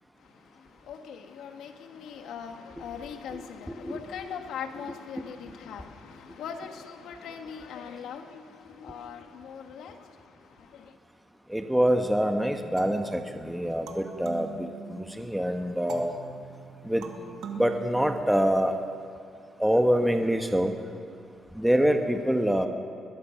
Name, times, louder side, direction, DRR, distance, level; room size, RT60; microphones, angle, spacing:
voice 1, 0.9-8.4 8.7-10.0, left 7 dB, 80° left, 1.8 m, -40 dB
voice 2, 11.5-16.1 16.9-17.0 17.6-18.7 19.6-20.7 21.6-22.7, equal, 5° right, 1.3 m, -25 dB
sound 1, 12.8-15.3 15.9-18.7, right 6 dB, 75° right, 2.2 m, -43 dB
21.5 x 21.0 x 5.9 m
cardioid pair, 90°, 0 cm